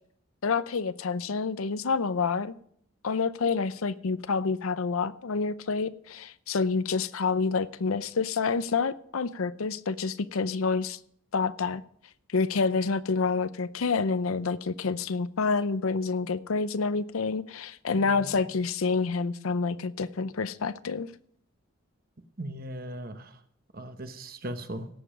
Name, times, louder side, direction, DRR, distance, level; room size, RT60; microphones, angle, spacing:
voice 1, 0.4-2.5 3.0-11.0 11.3-11.8 12.3-21.1, left 4 dB, 85° left, 15 dB, 0.6 m, -28 dB
voice 2, 18.0-18.4 22.4-23.3 23.7-24.9, right 1 dB, 45° right, 8 dB, 1.1 m, -38 dB
17.0 x 6.9 x 5.1 m, 0.65 s
head